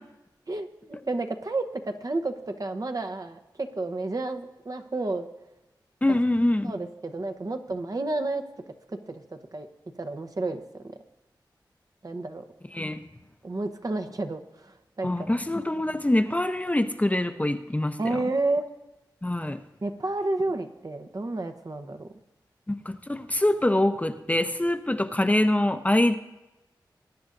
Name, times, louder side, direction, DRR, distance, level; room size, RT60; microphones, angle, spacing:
voice 1, 0.5-5.3 6.1-6.2 6.6-8.4 8.9-9.2 9.5-9.7 10.0-11.0 12.0-12.4 13.4-15.3 18.0-18.6 19.8-22.1, right 2 dB, 50° right, 7 dB, 0.9 m, -31 dB
voice 2, 6.0-6.7 12.7-13.0 15.0-18.2 19.2-19.6 22.7-26.2, left 1 dB, 20° left, 7 dB, 0.7 m, -24 dB
20.5 x 9.4 x 2.6 m, 1.0 s
cardioid pair, 50°, 8 cm